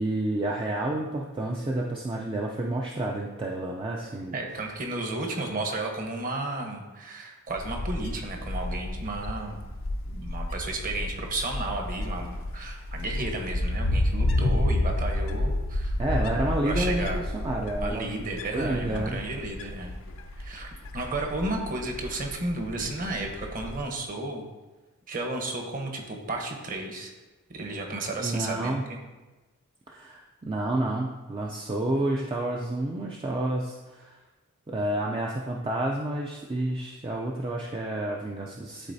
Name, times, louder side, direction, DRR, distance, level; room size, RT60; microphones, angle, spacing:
voice 1, 0.0-4.3 16.0-18.1 18.5-19.2 28.2-28.9 29.9-34.2 34.7-38.9, right 1 dB, 25° right, -1 dB, 0.4 m, -30 dB
voice 2, 4.3-9.6 10.1-16.0 16.6-17.2 17.8-20.0 20.3-24.4 25.1-27.1 27.5-28.8, right 2 dB, 40° right, 2 dB, 1.0 m, -33 dB
Wind, 7.5-23.8, left 1 dB, 65° left, 0.6 m, -31 dB
11.5 x 4.0 x 2.7 m, 1.2 s
head